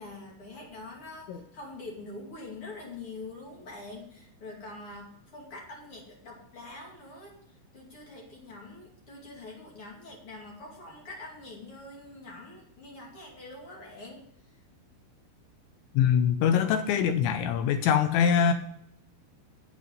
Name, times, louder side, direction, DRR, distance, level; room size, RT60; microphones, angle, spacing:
voice 1, 0.0-14.6, left 2 dB, 35° left, -2 dB, 2.5 m, -45 dB
voice 2, 15.9-18.5, left 8 dB, 80° left, 8 dB, 2.8 m, -23 dB
8.5 x 8.2 x 5.4 m, 0.72 s
omnidirectional pair, 5.6 m